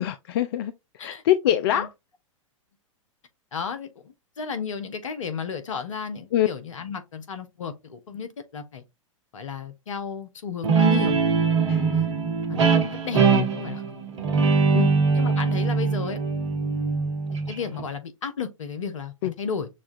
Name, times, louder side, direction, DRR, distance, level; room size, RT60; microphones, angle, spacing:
voice 1, 0.0-1.9 6.3-6.5 11.7-11.8 14.7-14.9 19.2-19.3, left 11 dB, 45° left, 0.4 m, -24 dB
voice 2, 3.5-8.8 9.3-11.2 11.9-12.1 12.5-13.2 13.5-13.8 14.7-14.8 15.2-16.2 17.3-19.7, left 6 dB, 65° left, 0.9 m, -33 dB
Guitar, 10.6-17.8, right 5 dB, 60° right, 1.1 m, -22 dB
6.3 x 2.3 x 2.5 m
figure-of-eight pair, 100°, 17 cm